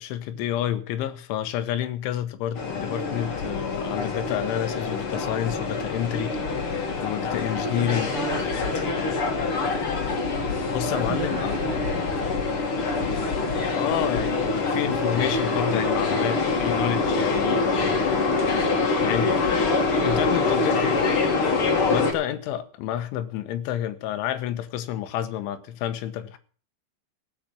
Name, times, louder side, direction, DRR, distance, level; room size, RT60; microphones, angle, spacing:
voice 1, 0.0-8.1 10.7-11.5 13.7-18.0 19.0-19.4 20.0-21.1 21.9-26.4, left 11 dB, 80° left, 3.4 m, -29 dB
sound 1, 2.5-22.1, left 4 dB, 50° left, 1.6 m, -25 dB
voice 2, 7.8-9.5 10.8-12.0 20.3-20.8, right 7 dB, 70° right, 1.9 m, -35 dB
16.0 x 5.8 x 8.8 m
omnidirectional pair, 5.5 m